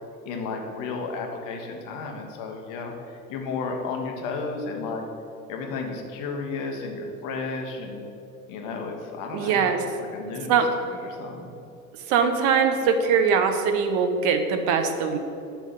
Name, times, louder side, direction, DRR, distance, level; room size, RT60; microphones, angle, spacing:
voice 1, 0.2-2.9 3.3-5.0 5.5-8.0 8.5-9.7 10.1-10.6 11.0-11.5, left 4 dB, 45° left, 2 dB, 1.4 m, -33 dB
voice 2, 9.3-9.8 10.5-10.7 12.1-15.2, right 6 dB, 45° right, 7 dB, 1.0 m, -22 dB
10.0 x 3.7 x 7.0 m, 2.7 s
figure-of-eight pair, 70°, 43 cm